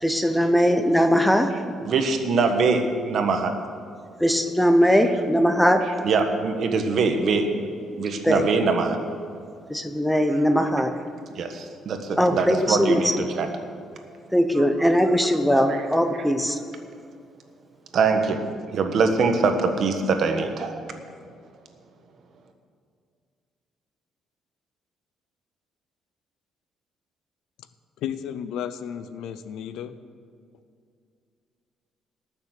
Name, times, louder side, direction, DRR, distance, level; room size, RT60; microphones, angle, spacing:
voice 1, 0.0-1.6 4.2-5.9 8.2-8.5 9.7-10.9 12.2-13.0 14.3-16.6, equal, ahead, 7 dB, 0.9 m, -20 dB
voice 2, 1.8-3.5 6.0-7.5 8.0-9.0 11.3-13.5 15.7-15.8 17.9-18.4 18.7-20.7, right 4 dB, 50° right, 5 dB, 1.3 m, -23 dB
voice 3, 28.0-29.9, left 9 dB, 80° left, 12 dB, 0.6 m, -33 dB
19.0 x 6.9 x 6.7 m, 2.3 s
cardioid pair, 145°, 0 cm